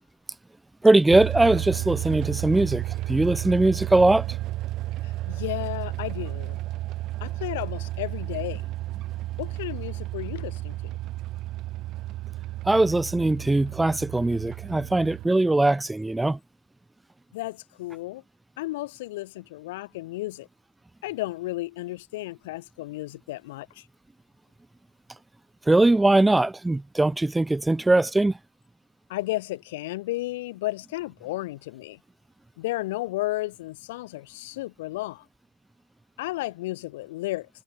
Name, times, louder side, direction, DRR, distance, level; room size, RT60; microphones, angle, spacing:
voice 1, 0.8-2.8 3.1-4.3 12.6-16.4 25.7-28.3, right 2 dB, 5° right, 0.7 m, -21 dB
sound 1, 1.1-15.3, right 16 dB, 45° right, 4.1 m, -32 dB
voice 2, 5.0-6.6 7.2-8.6 9.4-10.8 17.3-18.2 18.6-20.5 21.0-23.8 29.1-32.0 32.6-35.2 36.2-37.5, left 18 dB, 70° left, 3.6 m, -33 dB
hypercardioid pair, 110°, 0 cm